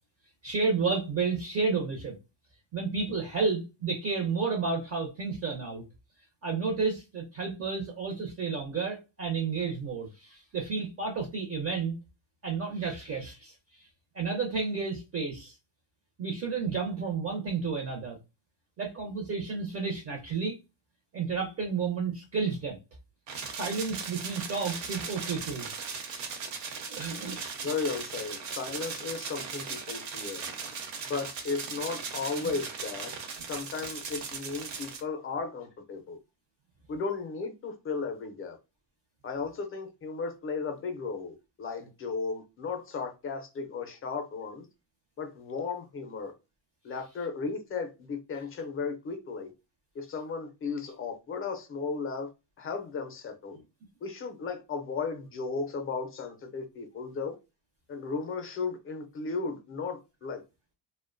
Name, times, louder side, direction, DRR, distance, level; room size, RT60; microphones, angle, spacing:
voice 1, 0.4-2.2 2.7-5.8 6.4-11.9 12.4-13.9 14.1-15.5 16.2-18.2 18.8-20.6 21.1-22.8 23.4-25.7 26.9-27.7 32.4-32.6, right 4 dB, 30° right, 0.5 m, -31 dB
sound 1, 23.3-35.0, right 5 dB, 65° right, 0.8 m, -38 dB
voice 2, 27.6-30.4 31.0-33.1 33.5-36.2 36.9-38.6 39.2-44.7 45.2-46.3 46.8-49.5 50.0-52.3 52.6-53.6 54.0-57.3 57.9-60.4, left 4 dB, 30° left, 0.5 m, -35 dB
2.5 x 2.1 x 2.5 m
cardioid pair, 140°, 47 cm